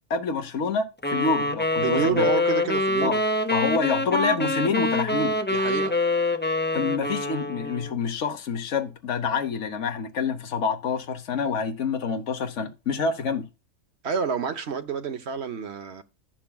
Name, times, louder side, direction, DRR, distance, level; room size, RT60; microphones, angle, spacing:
voice 1, 0.1-2.3 3.0-3.2 3.5-5.4 6.7-13.5, left 5 dB, 70° left, 1.3 m, -27 dB
sound 1, 1.0-8.0, left 2 dB, 15° left, 0.5 m, -25 dB
voice 2, 1.8-3.2 5.5-5.9 14.0-16.0, right 6 dB, 60° right, 1.2 m, -28 dB
15.0 x 5.8 x 2.3 m
omnidirectional pair, 1.3 m